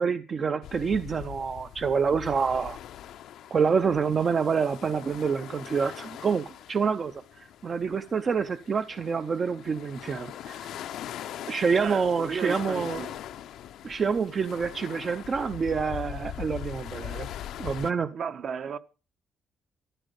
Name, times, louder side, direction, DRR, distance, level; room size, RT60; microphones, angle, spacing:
voice 1, 0.0-2.8 3.5-10.7 11.5-13.0 13.8-17.3 17.6-18.1, right 5 dB, 30° right, 0.7 m, -27 dB
sound 1, 0.6-17.9, left 11 dB, 80° left, 0.8 m, -41 dB
voice 2, 11.7-13.2 18.1-18.8, right 6 dB, 50° right, 1.1 m, -34 dB
14.0 x 12.5 x 5.3 m
cardioid pair, 170°, 0 cm